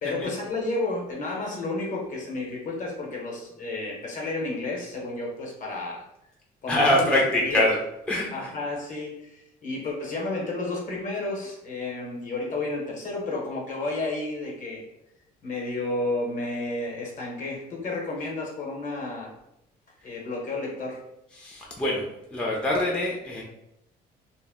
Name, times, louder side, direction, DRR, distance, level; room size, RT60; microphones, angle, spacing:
voice 1, 0.0-6.0 6.6-7.1 7.4-7.7 8.3-14.8 15.4-19.3 20.0-21.0, left 2 dB, 50° left, -1 dB, 0.9 m, -31 dB
voice 2, 6.7-7.8 8.1-8.5 21.3-22.0 22.3-23.4, left 1 dB, 5° left, -4 dB, 0.5 m, -24 dB
2.1 x 2.1 x 3.4 m, 0.82 s
cardioid pair, 110°, 17 cm